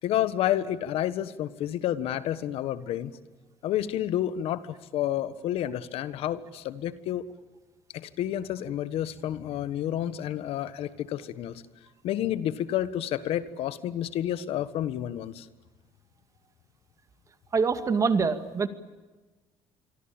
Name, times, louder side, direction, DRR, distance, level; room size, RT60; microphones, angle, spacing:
voice 1, 0.0-3.1 3.6-7.3 7.9-11.6 12.0-15.5, left 11 dB, 75° left, 14 dB, 1.4 m, -30 dB
voice 2, 17.5-18.7, right 5 dB, 35° right, 10 dB, 2.2 m, -24 dB
27.0 x 23.0 x 8.9 m, 1.2 s
cardioid pair, 115°, 10 cm